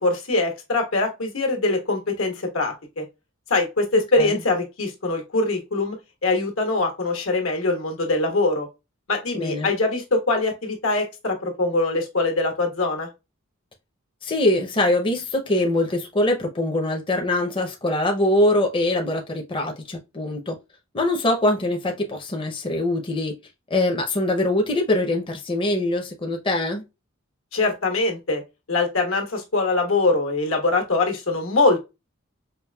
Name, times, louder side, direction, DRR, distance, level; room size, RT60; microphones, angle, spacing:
voice 1, 0.0-3.0 3.5-6.0 6.2-8.7 9.1-13.1 27.5-28.4 28.7-31.8, left 3 dB, 80° left, 1.3 m, -23 dB
voice 2, 9.3-9.7 14.2-20.6 20.9-23.3 23.7-26.8, left 1 dB, 25° left, 0.6 m, -23 dB
5.0 x 2.5 x 2.2 m
head